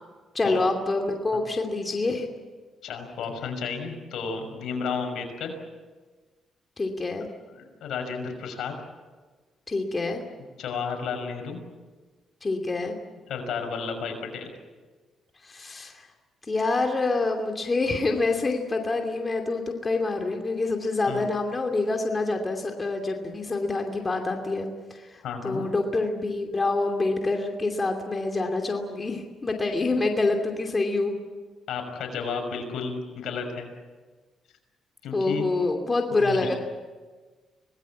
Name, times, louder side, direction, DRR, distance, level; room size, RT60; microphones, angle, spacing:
voice 1, 0.3-2.3 6.8-7.3 9.7-10.2 12.4-12.9 15.4-16.1 16.5-31.1 35.1-36.6, left 3 dB, 25° left, 3 dB, 2.8 m, -26 dB
voice 2, 2.8-5.5 7.6-8.8 10.6-11.6 13.3-14.5 21.1-21.2 25.2-25.7 29.9-30.0 31.7-33.7 35.0-35.5 36.2-36.5, left 5 dB, 75° left, 4 dB, 5.9 m, -32 dB
25.5 x 19.5 x 8.6 m, 1.4 s
cardioid pair, 90°, 0 cm